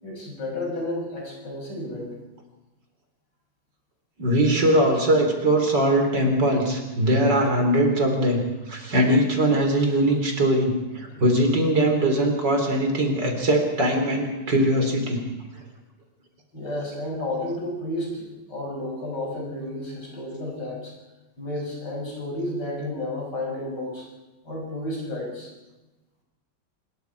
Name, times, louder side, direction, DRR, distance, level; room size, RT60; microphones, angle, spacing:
voice 1, 0.0-2.1 16.5-20.9 21.4-24.0 24.5-25.5, left 1 dB, 55° left, -2 dB, 7.2 m, -31 dB
voice 2, 4.2-8.4 8.7-15.2, right 1 dB, 55° right, 3 dB, 4.4 m, -21 dB
25.0 x 22.0 x 4.8 m, 1.1 s
omnidirectional pair, 2.2 m